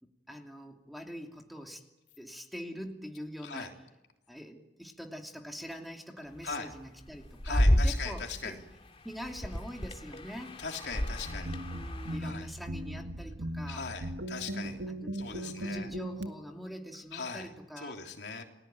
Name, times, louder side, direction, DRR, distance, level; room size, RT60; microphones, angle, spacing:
voice 1, 0.0-1.8 2.2-3.7 4.3-8.6 9.0-10.6 11.3-13.8 14.9-18.0, equal, ahead, 3 dB, 2.8 m, -44 dB
sound 1, 6.3-8.4 9.2-12.2, equal, 35° left, 2.2 m, -30 dB
voice 2, 7.4-8.6 10.6-11.6 12.2-12.5 13.7-14.8 15.1-15.9 17.1-17.5 17.8-18.4, left 5 dB, 75° left, 3 dB, 3.4 m, -39 dB
sound 2, 11.2-16.3, right 1 dB, 85° right, 1.9 m, -38 dB
30.0 x 20.0 x 9.4 m, 0.98 s
head